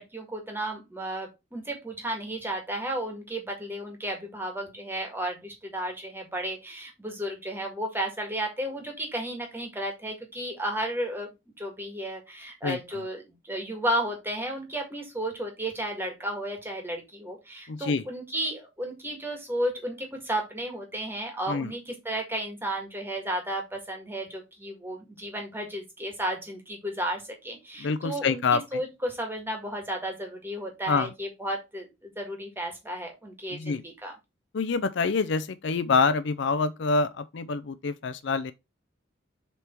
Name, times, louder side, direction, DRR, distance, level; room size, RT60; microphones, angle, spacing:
voice 1, 0.0-11.3 11.6-34.1, right 1 dB, 10° right, 1.8 m, -33 dB
voice 2, 12.6-13.0 17.7-18.0 21.5-21.7 27.8-28.8 30.9-31.1 33.5-33.8 34.5-38.5, left 4 dB, 60° left, 0.5 m, -26 dB
6.9 x 3.5 x 4.4 m
head